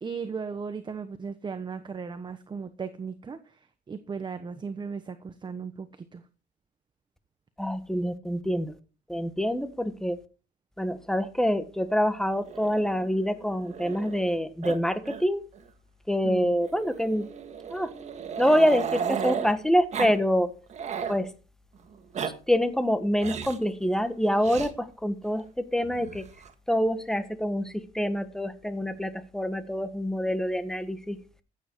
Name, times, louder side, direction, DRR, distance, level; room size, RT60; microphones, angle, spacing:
voice 1, 0.0-3.4 3.9-6.2 16.2-16.5, right 5 dB, 25° right, 1.1 m, -36 dB
voice 2, 7.6-8.7 9.1-10.2 10.8-15.4 16.1-17.3 17.7-17.9 18.4-20.5 21.1-21.3 22.5-25.4 25.7-26.2 26.7-31.2, equal, 5° left, 1.4 m, -26 dB
Growling, 12.5-14.3 14.6-14.8 15.0-15.2 15.5-15.6 16.7-19.5 19.9-20.2 20.5-21.2 21.9-22.3 23.2-23.6 24.4-24.7 25.8-26.5, right 7 dB, 45° right, 1.7 m, -35 dB
14.5 x 8.9 x 4.6 m
cardioid pair, 110°, 17 cm